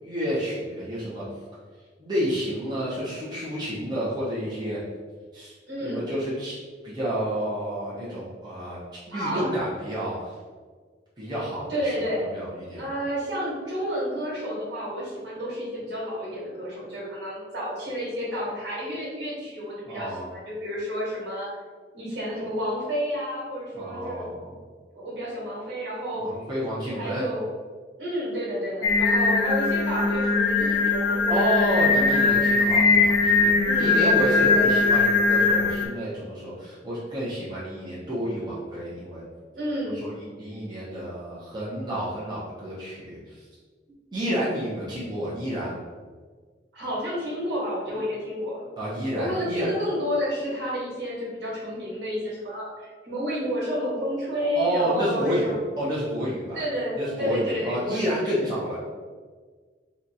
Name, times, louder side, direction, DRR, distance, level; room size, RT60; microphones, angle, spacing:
voice 1, 0.0-1.2 2.0-4.8 5.3-5.5 5.8-6.6 6.8-10.3 11.2-12.9 19.9-20.3 23.7-24.5 26.2-27.3 31.3-39.2 39.9-43.4 44.1-45.8 48.8-49.7 54.6-56.6 57.0-58.8, equal, 25° right, -8 dB, 0.7 m, -30 dB
voice 2, 5.7-6.1 9.1-9.5 11.7-12.3 12.7-21.5 21.9-24.5 24.9-26.2 26.9-27.5 28.0-32.5 33.5-34.1 34.4-34.7 39.5-40.1 46.7-48.6 49.2-55.6 56.5-58.6, equal, 75° right, -6 dB, 1.5 m, -30 dB
Singing, 28.8-35.9, left 4 dB, 80° left, 0.5 m, -21 dB
2.9 x 2.4 x 3.9 m, 1.5 s
head